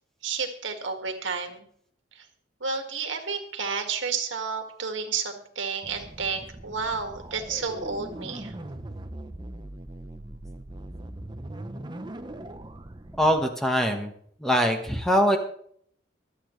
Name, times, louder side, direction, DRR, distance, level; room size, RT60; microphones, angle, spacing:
voice 1, 0.2-1.7 2.1-2.3 2.6-8.5, right 5 dB, 75° right, 5 dB, 2.0 m, -31 dB
engine pound, 5.8-13.4, right 1 dB, 25° right, 0.8 m, -40 dB
voice 2, 13.2-14.1 14.4-15.4, equal, ahead, 3 dB, 1.4 m, -22 dB
24.0 x 8.7 x 3.2 m, 0.62 s
head